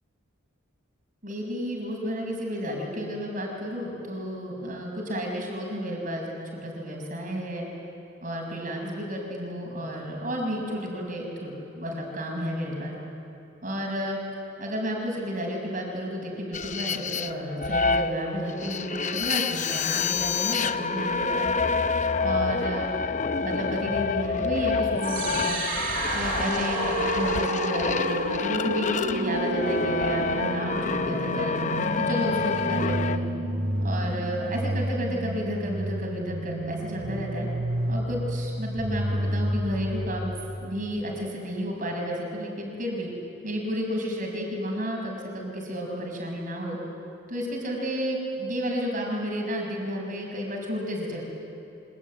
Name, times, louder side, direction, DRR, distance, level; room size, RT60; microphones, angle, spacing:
voice 1, 1.2-6.3 6.6-7.7 8.2-12.9 13.6-14.2 14.6-21.5 22.2-22.9 23.4-25.6 26.1-31.6 32.0-33.3 33.8-37.5 37.9-40.3 40.6-43.1 43.4-46.8 47.3-51.2, equal, 40° right, 0 dB, 6.2 m, -31 dB
sound 1, 16.5-33.2, left 5 dB, 35° left, 0.7 m, -28 dB
sound 2, 25.0-41.0, right 1 dB, 60° right, 3.0 m, -30 dB
26.0 x 22.0 x 9.7 m, 2.9 s
head